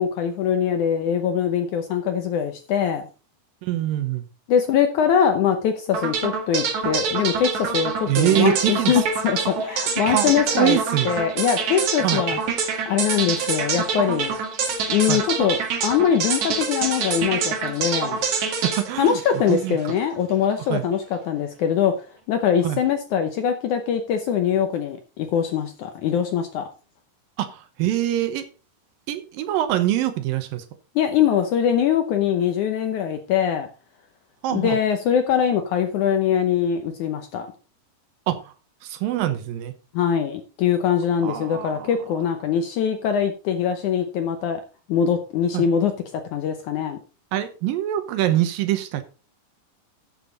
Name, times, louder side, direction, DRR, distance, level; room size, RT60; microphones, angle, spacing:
voice 1, 0.0-3.1 4.5-10.8 11.1-12.4 12.9-14.4 14.9-15.6 15.8-18.2 19.0-21.9 22.3-26.7 31.0-33.7 34.5-37.5 39.9-44.6 44.9-47.0, left 8 dB, 75° left, 7 dB, 1.9 m, -22 dB
voice 2, 3.6-4.2 8.1-9.0 10.0-11.1 12.0-12.4 15.1-15.2 18.3-19.2 19.5-19.9 20.7-20.9 22.6-22.8 27.4-28.5 29.1-30.6 34.4-34.8 38.3-38.5 38.8-39.7 41.2-41.9 45.5-45.7 47.3-49.0, right 13 dB, 75° right, 10 dB, 2.4 m, -24 dB
sound 1, 5.9-20.0, right 5 dB, 55° right, 2.9 m, -26 dB
13.0 x 7.2 x 3.9 m, 0.34 s
omnidirectional pair, 4.4 m